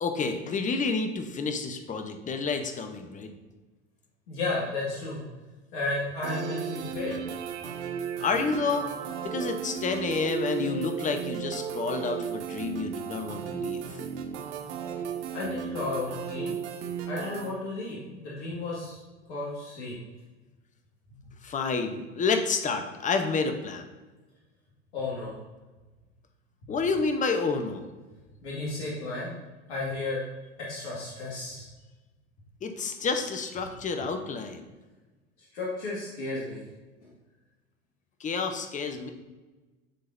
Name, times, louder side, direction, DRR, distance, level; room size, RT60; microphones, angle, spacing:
voice 1, 0.0-3.3 8.2-8.9 9.2-13.8 21.4-23.9 26.7-27.8 32.6-34.7 38.2-39.1, left 4 dB, 20° left, 6 dB, 0.8 m, -29 dB
voice 2, 4.3-5.2 5.7-7.2 15.3-16.5 17.0-19.0 19.3-20.0 24.9-25.3 28.4-29.3 29.7-30.2 30.6-31.7 35.5-36.7, left 2 dB, 70° left, -5 dB, 1.9 m, -33 dB
sound 1, 6.2-17.5, right 7 dB, 75° right, 0.8 m, -35 dB
9.9 x 3.8 x 2.6 m, 1.2 s
hypercardioid pair, 90°, 36 cm